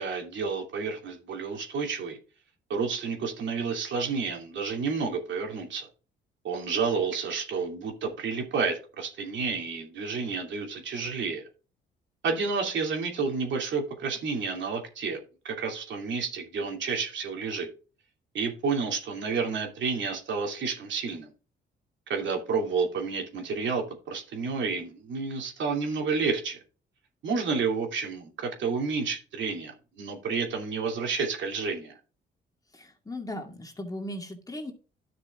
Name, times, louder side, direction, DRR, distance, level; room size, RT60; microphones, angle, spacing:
voice 1, 0.0-2.2 2.7-5.9 6.4-11.5 12.2-15.2 15.4-17.7 18.3-21.3 22.1-26.6 27.2-31.9, right 5 dB, 70° right, 2.7 m, -30 dB
voice 2, 32.7-34.7, left 1 dB, 20° left, 2.2 m, -37 dB
11.0 x 6.0 x 3.7 m
cardioid pair, 90°, 20 cm